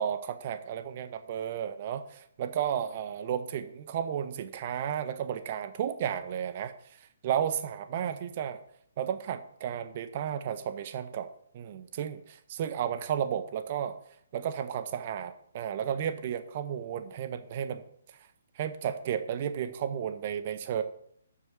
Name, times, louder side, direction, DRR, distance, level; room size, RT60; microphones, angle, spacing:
voice 1, 0.0-6.7 7.2-8.6 9.0-11.3 11.5-13.9 14.3-17.8 18.6-20.8, right 9 dB, 40° right, 10 dB, 0.9 m, -33 dB
7.6 x 6.8 x 6.6 m, 0.67 s
figure-of-eight pair, 130°, 0 cm